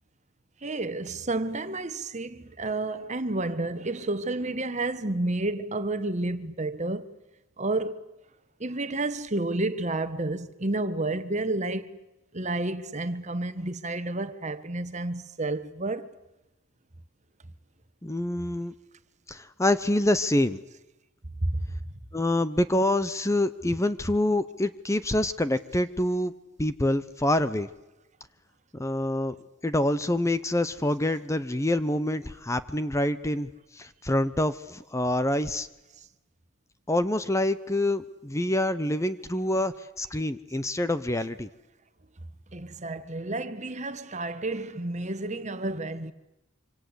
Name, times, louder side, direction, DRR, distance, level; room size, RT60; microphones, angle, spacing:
voice 1, 0.6-7.1 7.6-8.1 8.6-12.0 12.3-16.1 18.4-18.5 21.4-21.9 35.9-36.1 42.5-46.1, right 2 dB, 35° right, 1.5 m, -30 dB
voice 2, 18.0-18.7 19.3-20.6 22.1-26.3 26.6-27.7 28.8-29.3 29.6-33.5 33.7-35.7 36.9-41.5, left 1 dB, 15° left, 0.9 m, -26 dB
26.0 x 26.0 x 8.2 m
head